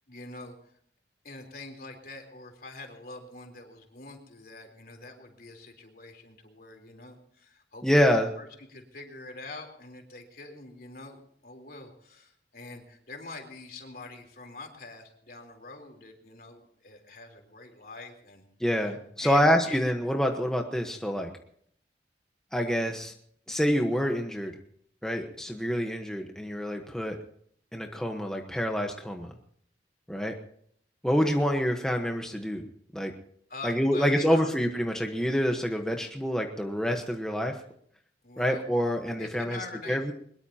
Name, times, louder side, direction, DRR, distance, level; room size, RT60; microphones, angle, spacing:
voice 1, 0.1-0.8 1.2-18.4 18.7-18.8 19.2-19.8 33.5-34.5 38.2-38.6 39.2-40.1, left 3 dB, 55° left, 4 dB, 3.8 m, -44 dB
voice 2, 7.8-8.3 18.6-21.3 22.5-23.1 23.5-24.6 25.0-27.2 27.7-29.3 30.1-30.4 31.0-32.6 32.9-33.1 33.6-37.6 38.4-39.6 39.9-40.1, equal, 5° left, 2 dB, 1.2 m, -27 dB
22.5 x 21.5 x 2.9 m, 0.64 s
head